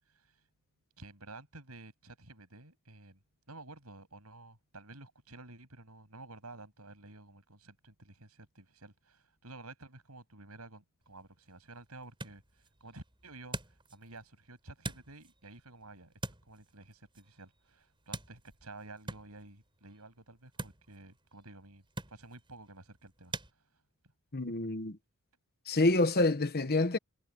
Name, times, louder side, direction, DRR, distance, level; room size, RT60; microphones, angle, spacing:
voice 1, 0.1-0.4 1.0-3.2 3.5-16.1 16.4-21.8 22.1-23.6, right 2 dB, 90° right, 7.4 m, -52 dB
sound 1, 11.0-23.5, right 2 dB, 25° right, 4.4 m, -47 dB
voice 2, 24.3-25.0 25.7-27.0, left 2 dB, 45° left, 1.3 m, -27 dB
head